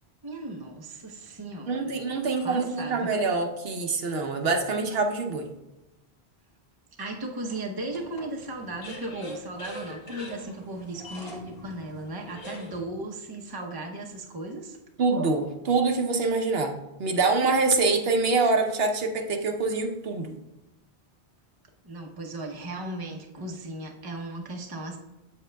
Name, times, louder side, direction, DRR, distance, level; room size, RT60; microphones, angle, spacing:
voice 1, 0.2-2.0 2.4-3.2 7.0-14.8 21.8-25.0, right 2 dB, 25° right, 1 dB, 0.7 m, -36 dB
sound 1, 1.2-2.9 3.6-3.7 7.5-12.8, left 1 dB, 65° left, 1.6 m, -44 dB
voice 2, 1.7-5.5 15.0-16.7 17.0-20.4, right 3 dB, 70° right, 4 dB, 0.9 m, -25 dB
7.7 x 7.5 x 2.2 m, 0.96 s
omnidirectional pair, 1.1 m